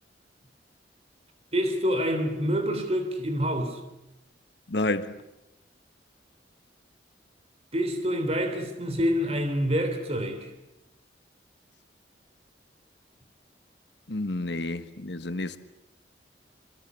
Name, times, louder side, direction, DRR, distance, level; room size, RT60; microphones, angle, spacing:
voice 1, 1.5-3.8 7.7-10.5, equal, 35° right, 3.6 m, -27 dB
voice 2, 4.7-5.2 14.1-15.6, left 2 dB, 70° left, 1.4 m, -30 dB
27.5 x 25.5 x 8.3 m
head